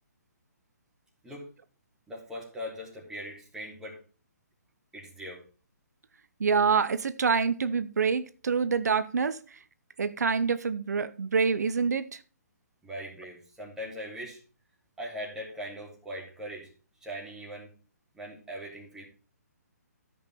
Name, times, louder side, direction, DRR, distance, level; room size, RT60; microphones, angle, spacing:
voice 1, 2.1-4.0 4.9-5.4 12.8-14.4 15.0-16.7 17.0-17.7 18.1-19.0, equal, 5° right, 3.1 m, -40 dB
voice 2, 6.4-9.4 10.0-12.2, right 5 dB, 75° right, 0.7 m, -26 dB
13.5 x 5.5 x 4.2 m
hypercardioid pair, 145°, 9 cm